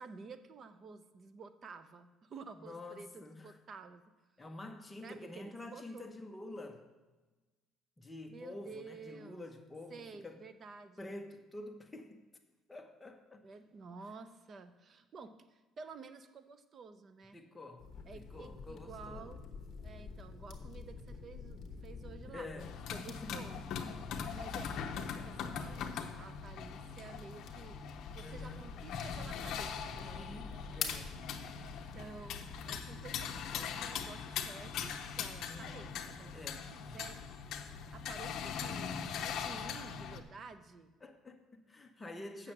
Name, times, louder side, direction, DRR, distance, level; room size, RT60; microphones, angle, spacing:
voice 1, 0.0-4.0 5.0-6.1 8.3-9.4 9.9-11.1 13.4-17.4 18.1-19.4 19.8-23.7 24.3-30.8 31.8-36.4 36.7-37.2 37.9-40.9 42.4-42.5, right 4 dB, 30° right, 11 dB, 0.5 m, -52 dB
voice 2, 2.6-3.6 4.4-6.9 8.0-10.4 11.0-12.2 12.7-13.4 17.3-19.3 22.3-22.7 23.1-23.5 28.2-28.8 30.0-31.2 35.5-35.9 36.3-36.8 39.5-39.7 41.0-42.5, left 2 dB, 10° left, 4 dB, 0.8 m, -48 dB
sound 1, 17.8-33.7, left 5 dB, 35° left, 1.1 m, -48 dB
sound 2, 22.6-40.2, left 7 dB, 50° left, 0.7 m, -41 dB
7.5 x 6.3 x 7.7 m, 1.2 s
cardioid pair, 175°, 0 cm